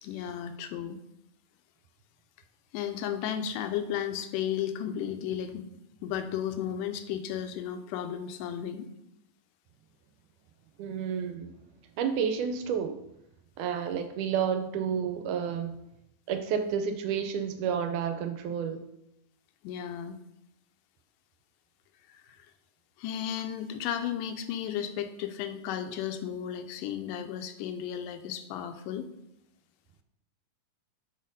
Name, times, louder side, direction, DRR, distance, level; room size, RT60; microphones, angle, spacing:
voice 1, 0.0-1.0 2.7-5.7 6.0-8.9 19.6-20.2 22.1-22.4 23.0-29.1, left 9 dB, 85° left, 9 dB, 2.1 m, -34 dB
voice 2, 10.8-11.5 12.0-13.0 13.6-15.8 16.3-18.8, right 7 dB, 80° right, 8 dB, 2.0 m, -30 dB
6.4 x 4.2 x 5.3 m, 0.83 s
omnidirectional pair, 3.7 m